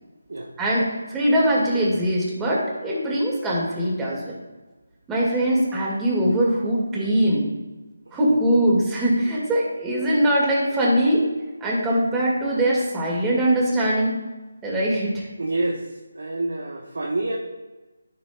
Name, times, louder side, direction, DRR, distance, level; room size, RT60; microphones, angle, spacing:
voice 1, 0.6-4.4 5.1-7.5 8.1-11.3 11.6-14.1 14.6-15.3, right 1 dB, 10° right, -4 dB, 2.2 m, -22 dB
voice 2, 15.4-17.4, right 2 dB, 65° right, 0 dB, 1.2 m, -28 dB
14.0 x 6.0 x 2.4 m, 1.2 s
figure-of-eight pair, 155°, 0 cm